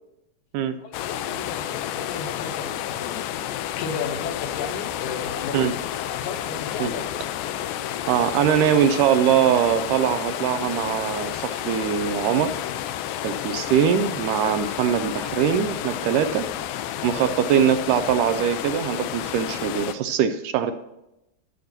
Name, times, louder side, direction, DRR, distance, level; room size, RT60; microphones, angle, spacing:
voice 1, 0.8-5.8 6.2-7.1 13.0-13.2 17.0-17.2, left 5 dB, 70° left, 4 dB, 2.1 m, -35 dB
sound 1, 0.9-20.0, left 11 dB, 90° left, 2.4 m, -31 dB
voice 2, 8.1-12.5 13.2-16.5 17.0-20.7, right 9 dB, 80° right, 10 dB, 2.0 m, -22 dB
11.0 x 6.6 x 5.8 m, 0.89 s
omnidirectional pair, 4.0 m